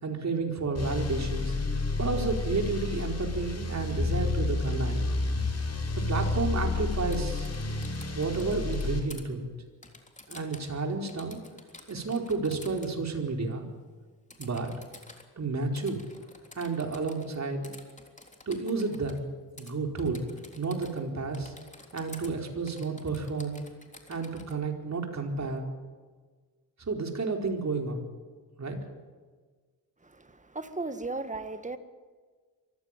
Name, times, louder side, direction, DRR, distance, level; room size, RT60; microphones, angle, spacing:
voice 1, 0.0-1.5 2.0-5.0 5.9-7.5 8.2-9.5 10.3-11.4 11.9-13.7 14.4-14.7 15.4-16.0 16.5-17.7 18.5-19.2 19.6-20.2 20.6-21.5 21.9-23.6 24.1-25.7 26.8-28.0 28.6-28.8, right 4 dB, 45° right, 3 dB, 4.6 m, -31 dB
sound 1, 0.7-9.0, left 3 dB, 40° left, 5.3 m, -30 dB
Typing, 7.0-9.2 9.8-10.8 11.1-12.9 14.3-15.2 15.8-17.4 17.6-19.2 19.6-19.7 20.0-21.1 21.3-22.3 22.7-24.6, left 2 dB, 20° left, 3.5 m, -50 dB
voice 2, 30.0-31.8, right 3 dB, 20° right, 10 dB, 1.9 m, -36 dB
24.0 x 15.0 x 9.2 m, 1.5 s
cardioid pair, 80°, 39 cm